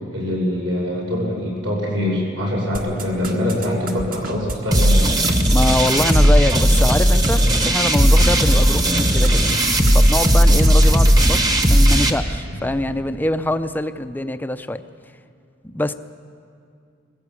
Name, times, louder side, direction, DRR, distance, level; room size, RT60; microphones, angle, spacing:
voice 1, 0.1-5.0 10.4-10.6 12.2-12.3, left 1 dB, 70° right, -3 dB, 7.0 m, -24 dB
sound 1, 2.7-8.5 8.9-9.6 9.9-10.0 10.2-10.7, right 2 dB, 45° right, 1.7 m, -29 dB
sound 2, 4.7-12.1, equal, 20° right, 1.2 m, -15 dB
voice 2, 5.5-9.4 9.9-14.8 15.6-15.9, left 1 dB, 10° left, 10 dB, 0.5 m, -24 dB
22.0 x 15.0 x 8.4 m, 2.3 s
head